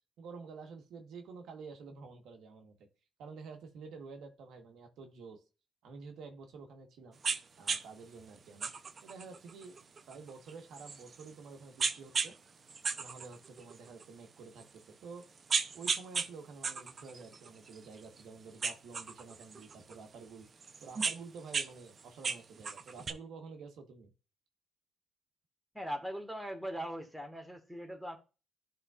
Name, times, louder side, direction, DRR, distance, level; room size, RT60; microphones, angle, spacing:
voice 1, 0.2-2.9 3.2-5.4 5.8-7.2 7.6-8.7 9.0-9.8 10.1-12.4 12.9-15.3 15.7-20.5 20.8-24.1, right 4 dB, 80° right, 1.2 m, -49 dB
sound 1, 7.2-7.4 7.7-7.8 8.6-11.3 11.8-12.3 12.7-14.0 14.6-14.7 15.2-16.3 16.6-18.2 18.6-20.0 20.6-21.7 22.0-23.1, right 5 dB, 45° right, 0.6 m, -35 dB
voice 2, 25.7-28.2, equal, ahead, 1.6 m, -40 dB
11.0 x 3.7 x 2.4 m
cardioid pair, 90°, 0 cm